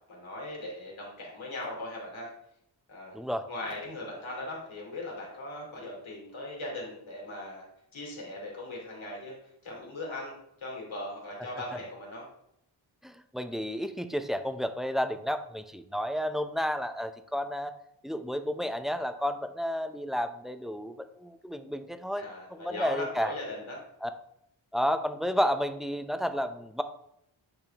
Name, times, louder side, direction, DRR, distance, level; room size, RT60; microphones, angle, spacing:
voice 1, 0.1-2.3 2.9-3.2 3.5-7.7 7.9-9.4 9.6-12.3 22.2-23.8, left 1 dB, 80° left, -2 dB, 2.7 m, -39 dB
voice 2, 3.1-3.5 13.0-17.7 18.0-20.9 21.2-22.3 22.5-23.3 24.0-24.1 24.7-26.8, equal, ahead, 9 dB, 0.5 m, -31 dB
8.9 x 4.3 x 3.4 m, 0.76 s
cardioid pair, 60°, 47 cm